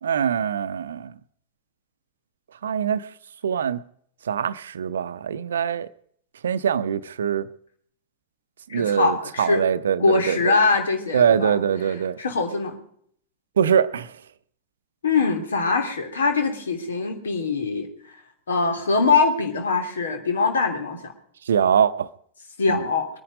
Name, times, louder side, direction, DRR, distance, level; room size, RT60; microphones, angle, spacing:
voice 1, 0.0-1.1 2.6-3.1 3.4-3.8 4.3-5.9 6.4-7.5 8.7-10.5 11.1-12.2 13.6-14.1 21.5-22.1 22.7-22.8, right 8 dB, 65° right, 0.7 m, -23 dB
voice 2, 8.7-9.6 10.0-11.6 12.2-12.8 15.0-18.1 18.5-21.1 22.6-23.1, left 4 dB, 70° left, 3.0 m, -23 dB
23.0 x 10.0 x 5.2 m
figure-of-eight pair, 90°, 0 cm